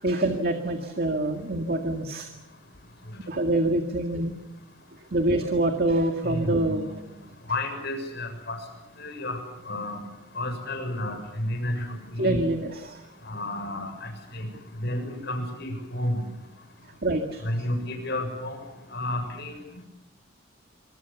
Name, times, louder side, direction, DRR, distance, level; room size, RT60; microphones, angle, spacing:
voice 1, 0.0-2.3 3.3-4.4 5.1-6.9 12.2-13.0 17.0-17.5, right 1 dB, 50° right, 5 dB, 2.0 m, -25 dB
voice 2, 6.2-6.9 7.5-8.6 9.0-9.4 9.6-10.0 10.3-11.9 12.2-12.4 13.2-14.5 14.7-16.2 17.4-18.6 18.9-19.5, left 1 dB, 55° left, 6 dB, 6.9 m, -31 dB
26.5 x 25.5 x 7.1 m, 0.91 s
head